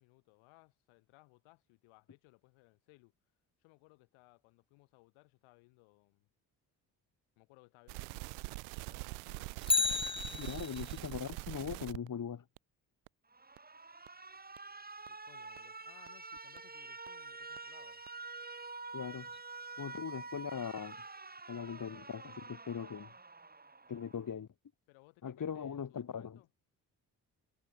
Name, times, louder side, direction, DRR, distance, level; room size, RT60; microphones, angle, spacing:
voice 1, 0.0-3.1 3.6-6.3 7.4-8.3 8.9-9.6 15.1-18.0 24.9-26.5, left 25 dB, 75° left, 5.4 m, -64 dB
sound 1, 7.9-12.1 12.6-12.7 13.1-13.2 13.6-13.7 14.1-14.2 14.6-14.7 15.1-15.2 15.6-15.7 16.1-16.2 16.6-16.7 17.1-17.2 17.6-17.7 18.1-18.2, right 33 dB, 70° right, 0.8 m, -43 dB
Bicycle, 9.6-11.0 19.3-19.4, left 3 dB, 10° left, 0.6 m, -32 dB
voice 2, 10.3-12.4 18.9-19.3 19.8-21.0 21.5-23.1 23.9-24.5 25.2-26.4, left 7 dB, 40° left, 2.2 m, -40 dB
Alarm, 13.3-24.3, right 3 dB, 20° right, 1.8 m, -48 dB
figure-of-eight pair, 40°, 48 cm